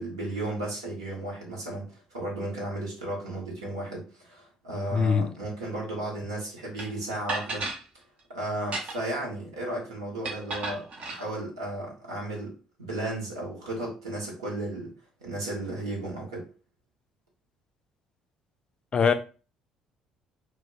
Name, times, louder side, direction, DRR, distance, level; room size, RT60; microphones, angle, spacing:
voice 1, 0.0-7.7 8.3-14.9 15.2-16.5, right 1 dB, 80° right, 0.9 m, -34 dB
voice 2, 4.9-5.3 18.9-19.1, left 6 dB, 35° left, 0.4 m, -22 dB
sound 1, 6.8-6.9 7.3-7.8 8.6-9.2 10.2-11.2, right 2 dB, 45° right, 0.6 m, -33 dB
2.2 x 2.1 x 3.5 m
figure-of-eight pair, 50°, 3 cm